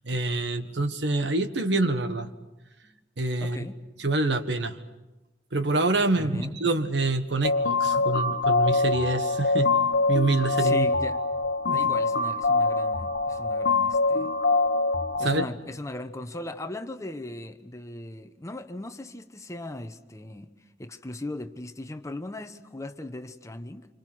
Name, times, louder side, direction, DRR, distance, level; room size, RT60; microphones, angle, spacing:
voice 1, 0.0-2.3 3.2-3.6 4.0-4.8 5.5-9.7 10.1-10.9 11.7-11.8 15.2-15.5, right 2 dB, 85° right, 1.5 m, -26 dB
voice 2, 3.4-3.8 6.1-6.6 10.6-11.2 11.7-14.3 15.2-20.5 20.8-23.9, left 1 dB, 20° left, 1.0 m, -38 dB
sound 1, 7.4-15.4, left 3 dB, 85° left, 0.9 m, -24 dB
27.5 x 25.5 x 6.2 m
head